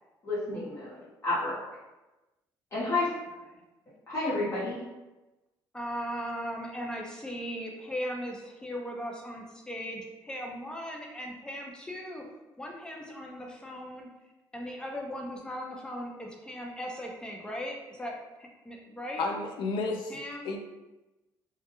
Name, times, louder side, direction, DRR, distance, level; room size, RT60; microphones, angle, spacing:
voice 1, 0.2-1.6 2.7-3.1 4.1-4.8, left 2 dB, 35° left, -10 dB, 1.0 m, -30 dB
voice 2, 5.7-12.2 12.6-14.1 14.5-19.3 20.1-20.5, equal, 10° left, 0 dB, 0.5 m, -38 dB
voice 3, 19.2-20.2 20.4-20.6, left 3 dB, 75° left, 3 dB, 0.4 m, -31 dB
2.2 x 2.1 x 2.9 m, 1.1 s
cardioid pair, 100°, 8 cm